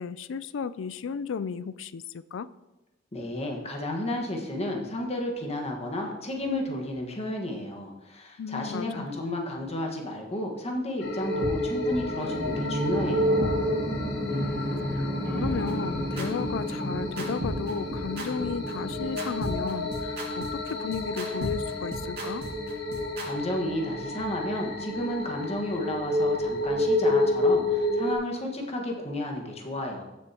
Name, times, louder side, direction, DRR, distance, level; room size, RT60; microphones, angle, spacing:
voice 1, 0.0-2.5 8.4-9.1 14.9-22.4, left 6 dB, 90° left, 17 dB, 0.4 m, -34 dB
voice 2, 3.1-13.6 23.2-30.0, left 1 dB, 35° left, 0 dB, 1.6 m, -32 dB
sound 1, 11.0-28.1, left 1 dB, 60° left, 1.2 m, -30 dB
sound 2, 11.4-11.5 11.9-12.0 12.4-12.5 12.9-13.0 13.4-13.5 13.9-14.0 14.4-14.5 14.9-15.0 15.4-23.3, equal, 55° right, 2.3 m, -35 dB
sound 3, 12.2-19.8, equal, 10° left, 1.1 m, -33 dB
14.5 x 7.0 x 3.0 m, 0.99 s
head